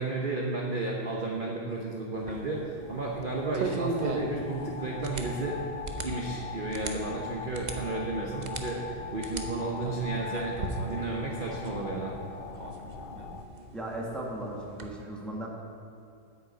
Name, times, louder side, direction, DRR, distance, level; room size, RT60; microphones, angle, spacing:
voice 1, 0.0-5.6 6.0-12.1, right 3 dB, 35° right, -2 dB, 0.9 m, -33 dB
sound 1, 2.1-14.9, right 3 dB, 85° right, 0.4 m, -39 dB
sound 2, 2.3-13.4, left 6 dB, 85° left, 1.6 m, -41 dB
voice 2, 13.7-15.5, right 1 dB, ahead, -2 dB, 1.3 m, -36 dB
9.1 x 6.7 x 8.5 m, 2.6 s
omnidirectional pair, 2.1 m